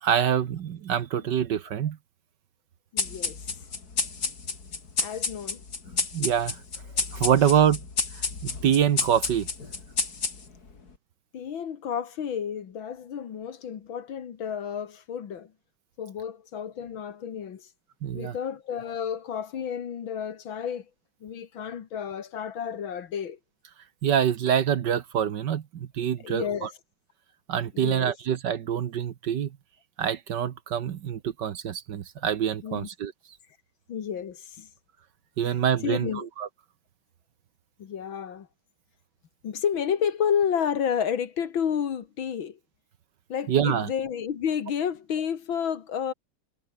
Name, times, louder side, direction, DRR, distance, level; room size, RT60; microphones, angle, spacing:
voice 1, 0.0-2.0 6.1-6.6 7.1-7.8 8.4-9.5 18.0-18.3 24.0-26.7 27.5-29.5 30.0-33.1 35.4-36.5 43.5-43.9, right 9 dB, 60° right, 1.6 m, -25 dB
voice 2, 2.9-3.4 5.0-5.6 11.3-15.5 16.0-17.7 18.1-20.9 21.2-23.4 26.2-26.7 27.7-28.1 32.6-32.9 33.9-34.7 35.8-36.3 37.8-38.5 39.4-42.6 43.3-46.1, left 8 dB, 70° left, 2.3 m, -31 dB
sound 1, 3.0-10.7, left 4 dB, 45° left, 3.5 m, -31 dB
omnidirectional pair, 2.3 m